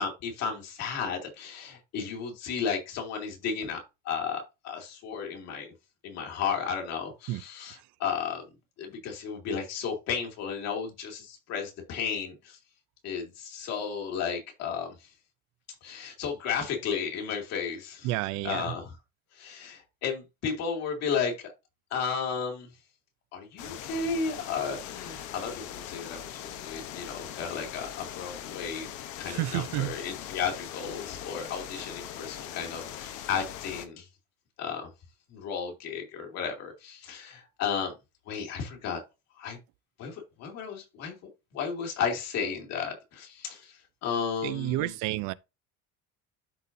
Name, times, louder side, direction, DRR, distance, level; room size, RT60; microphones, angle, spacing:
voice 1, 0.0-5.7 6.0-8.4 8.8-12.6 13.0-14.9 15.8-18.1 18.4-18.9 19.4-21.3 21.9-22.7 23.3-28.9 29.2-34.1 34.6-34.9 35.3-37.9 38.3-39.0 39.4-39.6 40.0-41.2 41.5-43.7 44.0-44.9, left 6 dB, 60° left, 2.5 m, -33 dB
voice 2, 18.0-18.7 29.2-29.9 44.4-45.3, right 17 dB, 75° right, 0.6 m, -30 dB
sound 1, 23.6-33.9, left 10 dB, 75° left, 1.1 m, -41 dB
12.5 x 4.2 x 2.7 m
cardioid pair, 180°, 30 cm